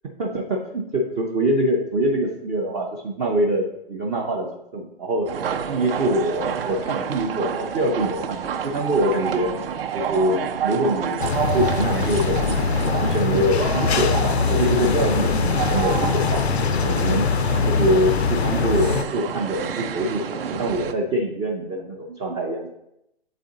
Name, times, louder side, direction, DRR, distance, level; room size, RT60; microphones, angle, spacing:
voice 1, 0.2-5.3 5.7-9.5 9.9-11.3 11.5-16.5 16.8-17.3 17.6-22.7, right 1 dB, 15° right, -2 dB, 0.3 m, -24 dB
sound 1, 5.3-20.9, right 7 dB, 65° right, 0.6 m, -29 dB
sound 2, 11.2-19.0, left 5 dB, 80° left, 0.5 m, -22 dB
7.4 x 4.1 x 3.7 m, 0.82 s
figure-of-eight pair, 120°, 31 cm